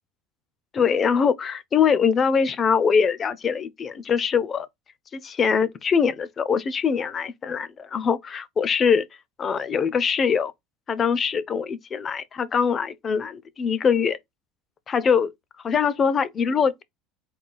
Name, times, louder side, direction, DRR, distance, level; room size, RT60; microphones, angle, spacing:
voice 1, 0.7-4.7 5.1-9.1 9.4-10.5 10.9-14.2 14.9-15.3 15.6-16.8, left 6 dB, 25° left, 0.4 m, -23 dB
3.8 x 2.3 x 3.8 m
cardioid pair, 160°, 0 cm